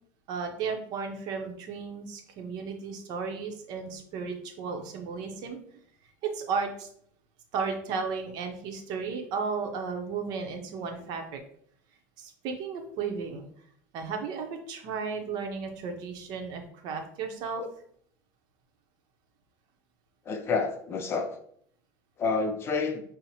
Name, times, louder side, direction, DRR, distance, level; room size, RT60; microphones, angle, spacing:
voice 1, 0.3-5.6 6.2-6.9 7.5-11.4 12.2-13.5 13.9-17.6, right 5 dB, 55° right, 4 dB, 0.7 m, -34 dB
voice 2, 20.3-21.3 22.2-23.0, left 4 dB, 30° left, 6 dB, 0.4 m, -29 dB
5.4 x 2.0 x 2.8 m, 0.64 s
supercardioid pair, 140°, 8 cm